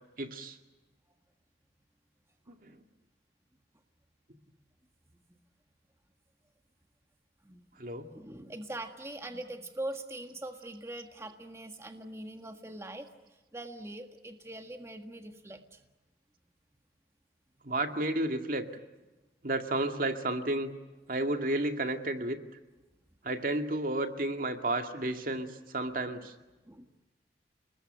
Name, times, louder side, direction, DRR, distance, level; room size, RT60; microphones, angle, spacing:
voice 1, 0.2-0.6 2.5-2.8 7.8-8.1 8.7-8.8 17.6-18.7 19.4-20.7 21.1-22.4 23.2-26.3, right 1 dB, 50° right, 6 dB, 2.2 m, -32 dB
voice 2, 8.1-15.8 26.6-26.9, right 1 dB, 15° right, 5 dB, 1.6 m, -42 dB
29.5 x 20.5 x 9.0 m, 1.1 s
head